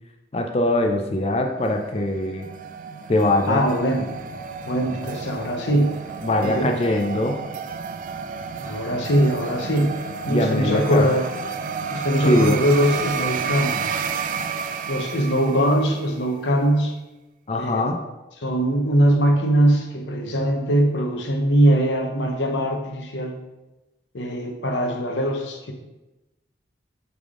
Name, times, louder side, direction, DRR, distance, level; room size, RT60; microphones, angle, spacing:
voice 1, 0.3-2.5 3.1-3.7 6.2-7.4 10.3-11.1 12.2-12.6 17.5-18.0, left 1 dB, 35° left, 3 dB, 0.4 m, -22 dB
sound 1, 1.5-16.2, right 6 dB, 45° right, 0.3 m, -31 dB
voice 2, 3.4-4.1 4.7-6.0 6.4-6.7 8.6-10.0 10.3-11.3 11.9-14.1 14.9-17.0 17.6-17.9 18.4-23.4 24.1-25.7, equal, 90° left, 3 dB, 0.9 m, -21 dB
8.2 x 3.5 x 3.7 m, 1.0 s
head